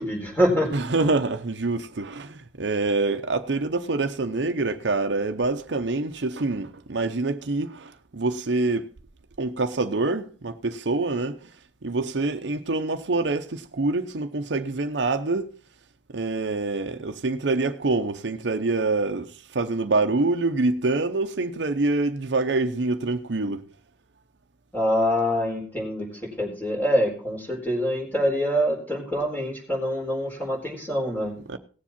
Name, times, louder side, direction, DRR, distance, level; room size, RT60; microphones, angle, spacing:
voice 1, 0.0-0.7 24.7-26.1 26.4-31.3, equal, 10° left, 4.2 m, -25 dB
voice 2, 0.7-8.9 9.4-11.5 11.8-15.5 16.1-23.6 31.5-31.6, right 3 dB, 80° right, 0.8 m, -26 dB
17.5 x 7.4 x 4.3 m
head